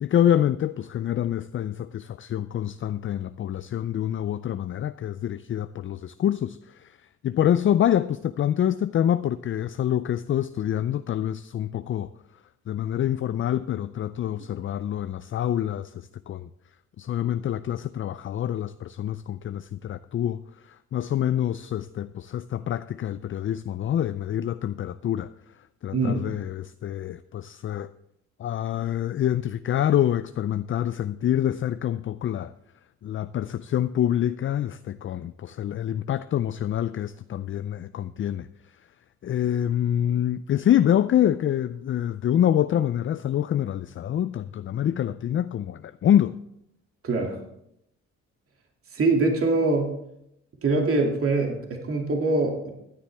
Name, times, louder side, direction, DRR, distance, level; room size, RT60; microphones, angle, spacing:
voice 1, 0.0-6.9 7.2-12.1 12.7-16.5 17.0-25.3 25.8-27.9 28.4-32.5 33.0-38.5 39.2-46.3, left 10 dB, 45° left, 0.4 m, -26 dB
voice 2, 25.9-26.2 47.0-47.4 48.9-50.0 50.6-52.7, right 3 dB, 45° right, 2.5 m, -23 dB
15.5 x 10.5 x 3.5 m
cardioid pair, 90°, 30 cm